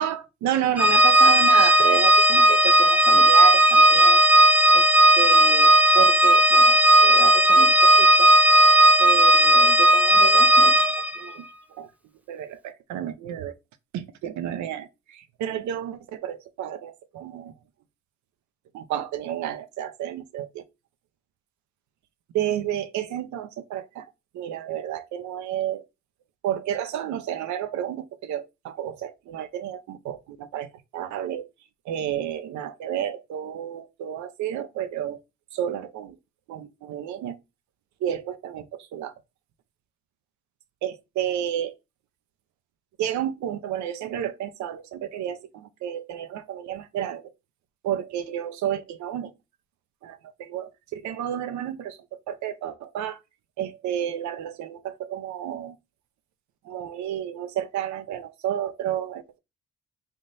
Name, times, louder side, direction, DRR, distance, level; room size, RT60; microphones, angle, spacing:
voice 1, 0.0-4.2 4.7-4.9 5.2-8.3 9.0-10.8 11.2-11.4 11.8-11.9 12.3-13.6 13.9-17.5 18.7-20.6 22.3-24.0 24.3-25.8 26.4-30.7 30.9-31.5 31.9-35.2 35.5-36.2 36.5-37.4 38.0-39.1 40.8-41.7 43.0-47.2 47.8-49.3 50.0-52.0 52.3-53.2 53.6-55.7 56.7-59.4, right 10 dB, 75° right, 0.7 m, -31 dB
Organ, 0.8-11.2, right 1 dB, 5° right, 0.6 m, -16 dB
3.6 x 2.5 x 4.0 m
supercardioid pair, 60°, 29 cm